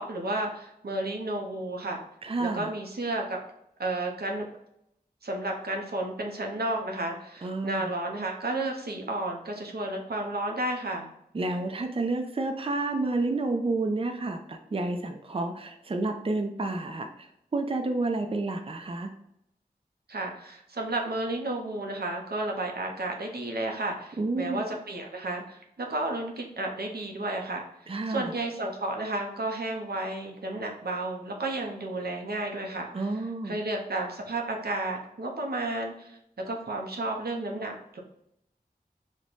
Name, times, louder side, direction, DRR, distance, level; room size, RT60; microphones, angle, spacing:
voice 1, 0.0-2.0 2.4-3.4 3.8-4.5 5.2-11.1 20.1-33.1 33.4-36.2 36.5-38.0, right 2 dB, 80° right, 1 dB, 0.6 m, -32 dB
voice 2, 2.2-2.7 7.4-7.9 11.3-17.3 17.5-19.1 24.2-24.6 27.9-28.3 32.9-33.5, right 2 dB, 35° right, 4 dB, 0.4 m, -30 dB
3.0 x 2.1 x 3.9 m, 0.78 s
wide cardioid pair, 45°, 16 cm